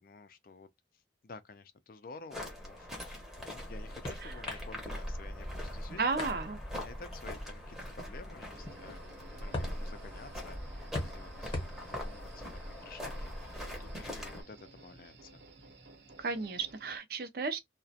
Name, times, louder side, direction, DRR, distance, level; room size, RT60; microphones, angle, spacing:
voice 1, 0.0-6.3 6.8-9.0 9.3-13.5 13.8-15.4, left 4 dB, 50° left, 0.4 m, -52 dB
sound 1, 2.3-14.4, equal, ahead, 0.7 m, -42 dB
sound 2, 3.2-14.1, left 1 dB, 30° left, 0.8 m, -46 dB
voice 2, 6.0-6.6 16.2-17.6, right 4 dB, 55° right, 0.4 m, -34 dB
sound 3, 8.5-17.0, right 3 dB, 75° right, 0.8 m, -56 dB
2.3 x 2.1 x 2.6 m
head